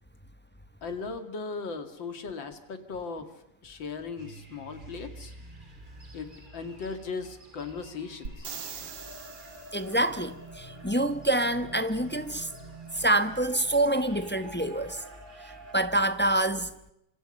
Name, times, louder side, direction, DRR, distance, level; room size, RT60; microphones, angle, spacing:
voice 1, 0.8-3.3 3.6-5.3 6.1-8.5, left 4 dB, 85° left, 2.9 m, -37 dB
sound 1, 4.2-15.8, right 2 dB, 25° right, 3.0 m, -48 dB
sound 2, 8.3-10.1 13.9-14.0, right 6 dB, 80° right, 2.5 m, -41 dB
voice 2, 9.7-12.5 12.9-15.0 15.7-16.7, right 1 dB, 10° left, 0.7 m, -26 dB
28.0 x 25.5 x 5.4 m
omnidirectional pair, 2.0 m